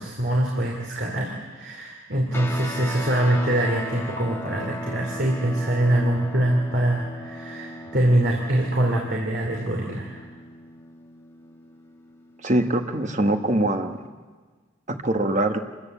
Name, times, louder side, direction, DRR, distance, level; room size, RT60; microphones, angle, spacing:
voice 1, 0.0-10.3, right 1 dB, 55° right, 0 dB, 2.8 m, -24 dB
sound 1, 2.3-14.1, left 1 dB, 15° left, 1.5 m, -38 dB
voice 2, 12.4-14.0 14.9-15.6, right 1 dB, 40° right, 6 dB, 1.4 m, -23 dB
27.0 x 14.5 x 8.3 m, 1.4 s
head